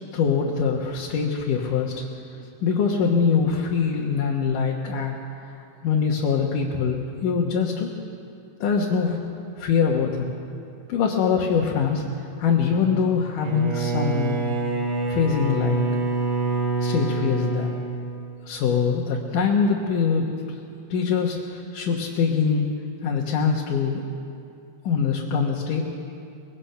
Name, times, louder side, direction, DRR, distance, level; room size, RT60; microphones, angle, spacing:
voice 1, 0.1-1.9 2.3-5.1 5.8-7.9 8.6-9.2 9.6-10.3 10.9-12.0 12.4-14.4 15.1-15.8 16.8-17.8 18.5-20.3 20.9-22.7 23.0-24.0 24.8-25.9, left 6 dB, 80° left, -2 dB, 3.0 m, -23 dB
Bowed string instrument, 13.4-18.7, right 3 dB, 55° right, 3.4 m, -26 dB
24.0 x 21.0 x 5.7 m, 2.5 s
omnidirectional pair, 3.7 m